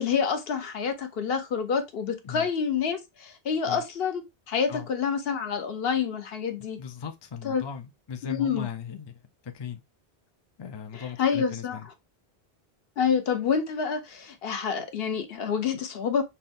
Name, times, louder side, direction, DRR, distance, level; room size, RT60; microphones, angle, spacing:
voice 1, 0.0-6.8 7.4-7.6 8.2-8.7 10.9-11.8 13.0-16.2, left 6 dB, 70° left, 0.9 m, -28 dB
voice 2, 6.8-9.1 9.4-9.8 10.6-11.9, left 6 dB, 35° left, 0.4 m, -38 dB
5.6 x 2.2 x 2.6 m
omnidirectional pair, 1.1 m